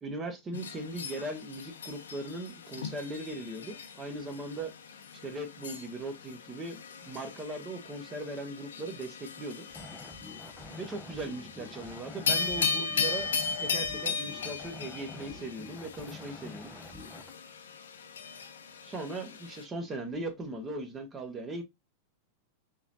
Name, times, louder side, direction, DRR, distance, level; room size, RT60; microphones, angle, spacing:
voice 1, 0.0-4.7 5.2-9.6 10.8-13.3 13.6-16.7 18.8-21.6, right 2 dB, 20° right, 1.4 m, -39 dB
sound 1, 0.5-19.6, left 5 dB, 65° left, 0.9 m, -37 dB
sound 2, 9.7-17.3, left 1 dB, ahead, 0.7 m, -47 dB
5.6 x 3.3 x 2.6 m
figure-of-eight pair, 90°, 0 cm